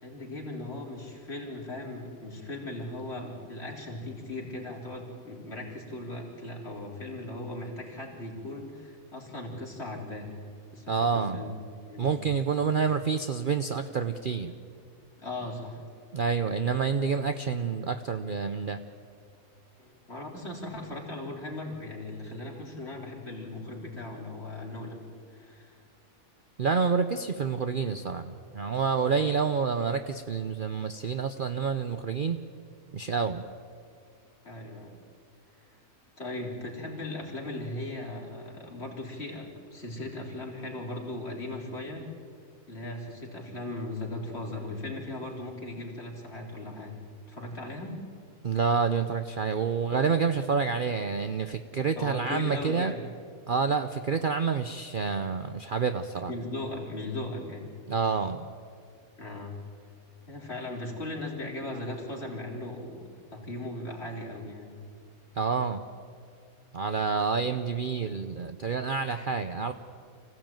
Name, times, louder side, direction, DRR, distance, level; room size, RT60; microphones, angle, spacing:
voice 1, 0.0-10.3 10.7-11.5 11.9-12.2 15.2-15.8 19.8-25.0 25.3-25.8 29.0-29.4 34.4-35.0 36.2-42.1 42.7-46.9 47.3-48.0 52.0-53.0 56.3-57.7 59.2-59.6 60.3-64.8, left 2 dB, 45° left, -2 dB, 4.0 m, -38 dB
voice 2, 10.9-11.4 12.0-14.5 16.1-18.8 26.6-32.4 32.9-33.4 48.4-52.9 53.5-56.3 57.9-58.5 65.4-65.8 66.7-69.7, right 5 dB, 45° right, 8 dB, 0.7 m, -28 dB
25.5 x 16.0 x 9.0 m, 2.3 s
omnidirectional pair, 1.5 m